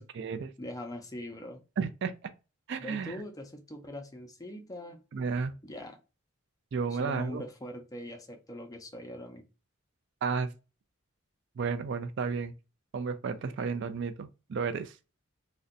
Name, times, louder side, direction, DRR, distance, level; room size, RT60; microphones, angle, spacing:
voice 1, 0.0-0.5 1.8-2.1 2.7-3.2 5.1-5.5 6.7-7.4 10.2-10.5 11.6-12.5 12.9-15.0, right 5 dB, 55° right, 0.4 m, -32 dB
voice 2, 0.6-1.6 2.8-5.0 5.6-6.0 6.9-9.4, left 1 dB, 15° left, 0.5 m, -42 dB
2.5 x 2.1 x 3.9 m
head